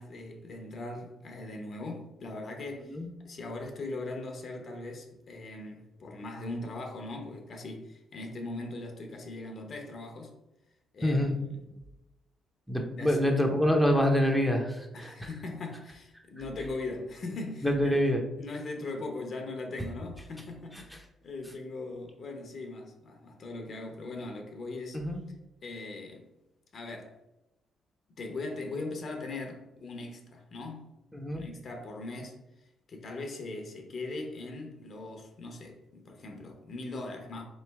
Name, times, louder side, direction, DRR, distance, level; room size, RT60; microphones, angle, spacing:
voice 1, 0.0-10.3 10.9-11.6 13.0-13.2 14.9-18.1 18.4-20.9 21.2-25.0 25.6-26.3 26.7-27.1 28.2-30.9 31.3-32.4 32.9-37.4, left 2 dB, 50° left, 0.7 m, -40 dB
voice 2, 11.0-11.4 12.7-15.3 17.6-18.2 20.7-20.8 24.9-25.2 31.1-31.5, equal, ahead, 0.6 m, -26 dB
3.8 x 3.1 x 3.4 m
cardioid pair, 90°, 0 cm